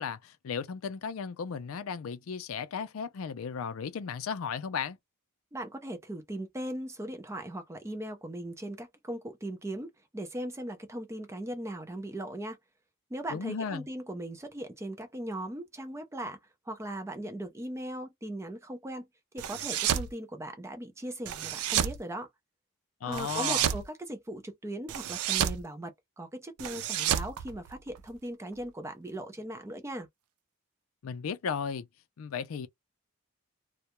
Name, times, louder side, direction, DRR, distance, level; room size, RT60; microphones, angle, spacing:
voice 1, 0.0-5.0 13.3-13.9 23.0-23.7 31.0-31.9 32.2-32.7, left 6 dB, 70° left, 0.4 m, -35 dB
voice 2, 5.5-12.6 13.1-16.4 16.7-19.1 19.3-22.3 23.0-30.1, right 1 dB, 15° right, 0.4 m, -39 dB
sound 1, 19.4-20.1 21.3-22.0 23.1-23.8 24.9-25.6 26.6-28.1, right 10 dB, 85° right, 0.4 m, -30 dB
2.3 x 2.0 x 2.9 m
head